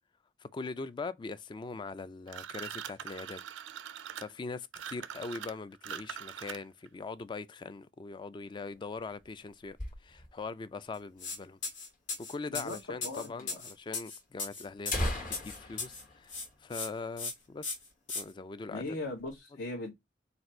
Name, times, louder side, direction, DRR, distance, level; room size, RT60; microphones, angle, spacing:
voice 1, 0.4-3.4 4.2-9.8 10.0-11.6 12.2-17.7 18.1-19.0, left 4 dB, 25° left, 0.3 m, -41 dB
sound 1, 2.3-6.9, right 9 dB, 90° right, 0.4 m, -43 dB
sound 2, 8.7-10.5 10.9-11.0 11.2-11.3 11.9-12.0 12.9-13.1 13.4-13.5 14.2-14.3 14.7-17.3 17.6-17.7 18.1-18.4 18.8-19.4, left 1 dB, 50° left, 1.3 m, -38 dB
sound 3, 11.2-11.4 11.6-16.0 16.3-16.9 17.2-17.3 17.6-18.2, left 4 dB, 85° left, 1.7 m, -37 dB
voice 2, 13.0-13.6 18.7-19.9, left 2 dB, 70° left, 1.1 m, -39 dB
4.0 x 2.6 x 4.3 m
head